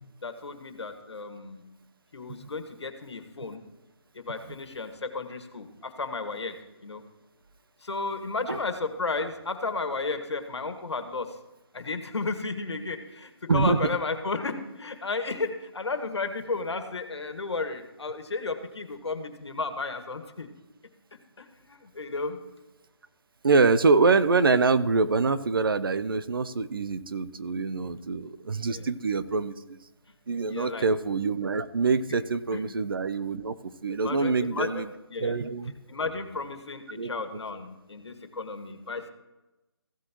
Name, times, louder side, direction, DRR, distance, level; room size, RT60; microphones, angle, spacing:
voice 1, 0.2-1.6 2.1-3.6 4.1-6.5 6.8-7.0 7.8-11.4 11.7-20.5 21.4-22.4 27.8-28.0 28.7-28.9 30.5-30.9 32.5-32.6 33.9-34.8 35.1-35.4 35.9-39.1, left 3 dB, 80° left, 7 dB, 1.7 m, -33 dB
voice 2, 23.4-29.8 30.3-33.5 33.8-34.9 35.2-35.7 36.9-37.1, right 4 dB, 55° right, 14 dB, 0.6 m, -25 dB
15.5 x 7.8 x 3.0 m, 1.0 s
hypercardioid pair, 170°, 14 cm